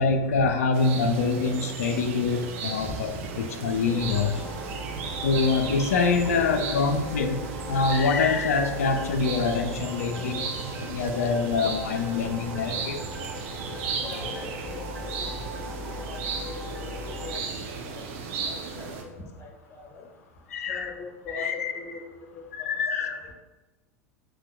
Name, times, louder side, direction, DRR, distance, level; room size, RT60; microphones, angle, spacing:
voice 1, 0.0-4.4 5.2-10.4 10.8-13.1 20.5-20.9 21.3-21.7 22.5-23.3, left 4 dB, 65° left, 6 dB, 0.4 m, -25 dB
sound 1, 0.7-19.0, right 5 dB, 55° right, 0.5 m, -35 dB
voice 2, 2.8-3.3 14.0-14.9 15.1-15.5 15.8-16.2 16.4-18.0 18.4-20.0 20.7-22.7 23.0-23.3, left 3 dB, 25° left, -2 dB, 1.4 m, -42 dB
sound 2, 4.0-17.4, left 1 dB, 10° left, 0.6 m, -40 dB
5.8 x 2.2 x 2.2 m, 1.1 s
figure-of-eight pair, 80°, 8 cm